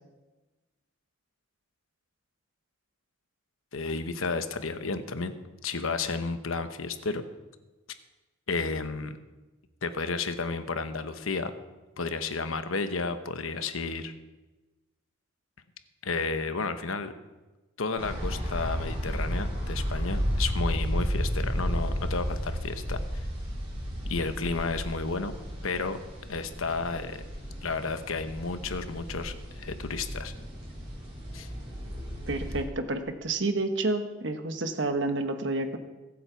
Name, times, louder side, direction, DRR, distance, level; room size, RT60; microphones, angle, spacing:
voice 1, 3.7-5.4 5.6-7.2 8.5-9.2 9.8-11.5 12.0-14.1 16.0-17.1 17.8-23.2 24.1-25.3 25.6-26.0 26.3-27.2 27.6-30.3 31.3-31.5, left 4 dB, 85° left, 9 dB, 1.0 m, -32 dB
sound 1, 18.0-32.6, equal, 30° right, 3.9 m, -33 dB
voice 2, 32.3-35.8, right 2 dB, 60° right, 7 dB, 1.1 m, -29 dB
22.0 x 7.7 x 4.6 m, 1.2 s
head